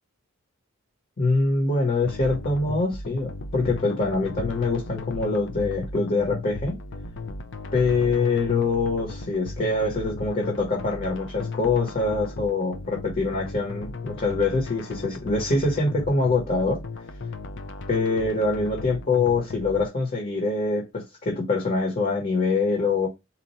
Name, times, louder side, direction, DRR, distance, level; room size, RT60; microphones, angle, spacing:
voice 1, 1.2-6.8 7.7-16.8 17.9-23.1, left 3 dB, 40° left, 1.3 m, -24 dB
sound 1, 2.0-19.9, left 3 dB, 60° left, 0.6 m, -36 dB
4.3 x 2.5 x 4.3 m
head